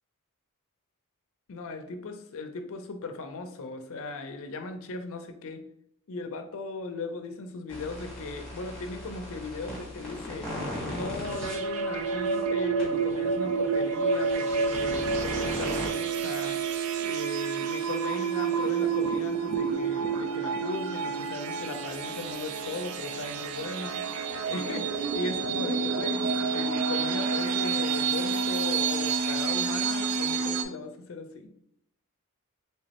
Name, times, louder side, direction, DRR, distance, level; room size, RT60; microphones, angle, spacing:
voice 1, 1.5-5.6 6.1-10.5 10.9-16.6 17.0-24.0 24.5-31.5, left 3 dB, 65° left, 7 dB, 0.5 m, -38 dB
sound 1, 7.7-11.5 12.2-12.3 12.8-12.9 14.1-15.9, left 1 dB, 5° left, 1.3 m, -37 dB
sound 2, 11.2-30.6, right 5 dB, 70° right, 0.4 m, -29 dB
3.3 x 3.1 x 2.8 m, 0.72 s
head